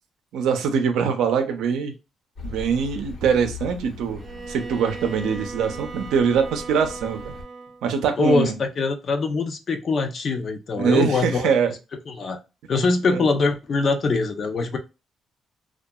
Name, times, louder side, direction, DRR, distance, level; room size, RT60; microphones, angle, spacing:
voice 1, 0.3-1.9 2.4-7.3 7.8-8.5 10.8-11.7 13.1-13.2, right 6 dB, 85° right, 0.5 m, -23 dB
Accelerating revving vroom, 2.4-7.4, left 3 dB, 70° left, 1.1 m, -40 dB
Bowed string instrument, 4.2-7.9, right 4 dB, 35° right, 0.3 m, -37 dB
voice 2, 8.2-11.5 12.1-12.4 12.7-14.8, left 3 dB, 50° left, 0.5 m, -23 dB
2.7 x 2.3 x 2.2 m
cardioid pair, 90°, 0 cm